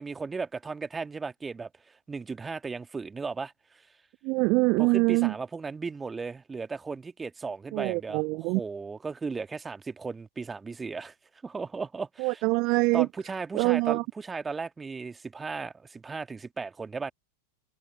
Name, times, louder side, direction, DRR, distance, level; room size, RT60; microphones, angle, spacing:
voice 1, 0.0-3.5 4.8-11.1 11.4-12.4 12.9-17.1, right 4 dB, 15° right, 1.8 m, -36 dB
voice 2, 4.2-5.3 7.7-8.6 12.2-13.1 13.5-14.0, right 26 dB, 40° right, 0.4 m, -24 dB
figure-of-eight pair, 90°, 0 cm